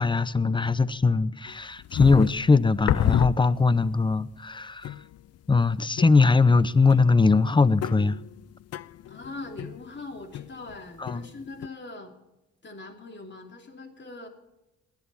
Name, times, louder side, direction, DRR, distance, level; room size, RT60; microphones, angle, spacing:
voice 1, 0.0-4.9 5.5-8.2 11.0-11.3, left 4 dB, 15° left, 0.6 m, -21 dB
sound 1, 1.5-4.0 4.4-4.5 4.8-5.4 6.0-6.6 6.9-10.7 11.1-11.7, left 12 dB, 55° left, 0.5 m, -31 dB
voice 2, 9.1-12.1 12.6-14.3, left 3 dB, 35° left, 3.0 m, -41 dB
20.0 x 10.5 x 4.2 m
cardioid pair, 90°, 30 cm